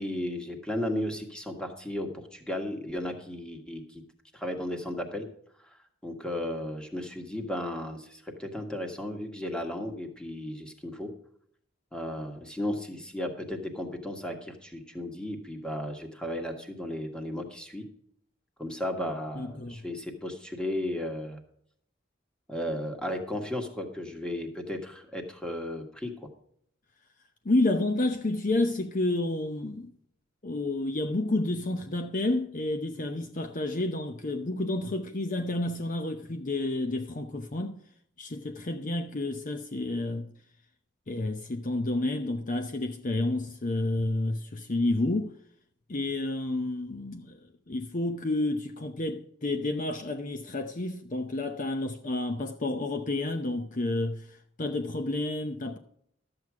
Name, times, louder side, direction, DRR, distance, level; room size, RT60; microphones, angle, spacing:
voice 1, 0.0-4.0 4.3-5.3 5.6-5.8 6.0-11.1 11.9-17.9 18.6-21.4 22.5-26.1, left 1 dB, 5° left, 1.6 m, -35 dB
voice 2, 19.4-19.8 27.4-29.9 30.4-37.8 38.2-40.3 41.1-45.3 45.9-47.4 47.7-55.8, left 2 dB, 45° left, 0.8 m, -30 dB
12.5 x 8.0 x 4.8 m
head